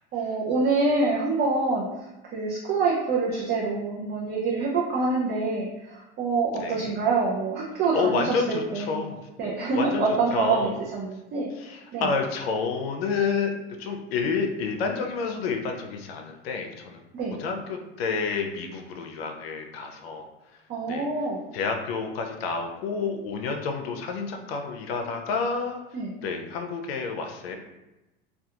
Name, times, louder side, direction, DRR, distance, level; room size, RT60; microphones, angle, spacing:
voice 1, 0.1-1.9 2.3-9.1 9.4-11.5 11.9-12.1 17.1-17.4 20.7-21.4 25.9-26.1, right 3 dB, 35° right, -5 dB, 0.5 m, -26 dB
voice 2, 6.6-7.0 7.9-9.2 9.7-10.0 10.3-10.8 11.6-13.5 13.8-17.0 17.4-20.2 20.9-21.1 21.5-25.8 26.2-27.6, left 5 dB, 90° left, 3 dB, 0.5 m, -29 dB
2.3 x 2.3 x 2.8 m, 0.99 s
supercardioid pair, 105°, 29 cm